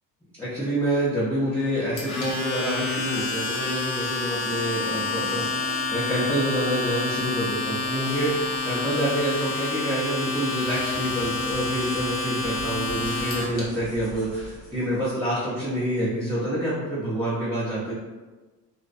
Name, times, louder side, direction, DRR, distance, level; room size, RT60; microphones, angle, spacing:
voice 1, 0.4-17.9, right 1 dB, 5° left, -10 dB, 0.4 m, -27 dB
sound 1, 1.5-15.2, equal, 85° left, 1.2 m, -43 dB
Domestic sounds home sounds, 2.0-13.6, left 3 dB, 45° left, 0.7 m, -28 dB
2.5 x 2.0 x 2.4 m, 1.2 s
cardioid pair, 145°, 30 cm